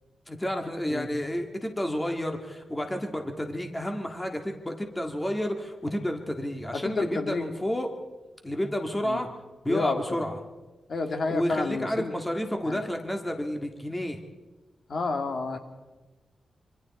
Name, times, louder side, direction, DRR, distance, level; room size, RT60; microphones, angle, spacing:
voice 1, 0.3-7.9 8.4-9.3 9.6-10.4 11.3-14.2, equal, 10° left, 4 dB, 1.9 m, -30 dB
voice 2, 6.7-7.5 9.0-9.2 9.7-10.2 10.9-12.1 12.6-12.8 14.9-15.6, left 3 dB, 50° left, 5 dB, 2.3 m, -30 dB
26.0 x 25.0 x 4.3 m, 1.1 s
wide cardioid pair, 140°, 0 cm